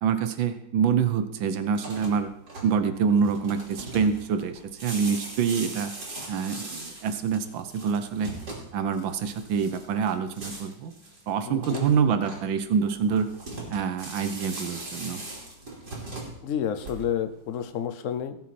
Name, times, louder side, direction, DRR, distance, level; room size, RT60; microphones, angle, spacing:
voice 1, 0.0-2.3 2.6-5.9 6.3-8.3 8.7-10.9 11.3-13.3 13.7-15.2, right 6 dB, 85° right, 9 dB, 1.6 m, -26 dB
sound 1, 1.7-17.3, right 2 dB, 60° right, 3.4 m, -40 dB
voice 2, 11.5-11.9 16.4-18.4, left 9 dB, 55° left, 9 dB, 1.0 m, -30 dB
18.0 x 6.2 x 4.3 m, 0.77 s
omnidirectional pair, 2.0 m